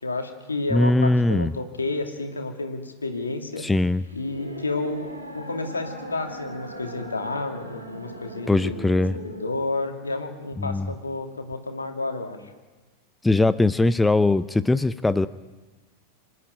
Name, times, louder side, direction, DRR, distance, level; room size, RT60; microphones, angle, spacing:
voice 1, 0.0-3.7 4.1-5.0 5.3-8.7 9.2-12.4, left 2 dB, 75° left, 4 dB, 2.6 m, -30 dB
voice 2, 0.7-1.5 3.6-4.0 8.5-9.2 10.6-10.9 13.2-15.3, left 2 dB, 5° left, 15 dB, 0.5 m, -21 dB
sound 1, 3.5-9.5, equal, 85° right, 2.8 m, -39 dB
26.0 x 11.0 x 9.5 m, 1.3 s
figure-of-eight pair, 90°, 0 cm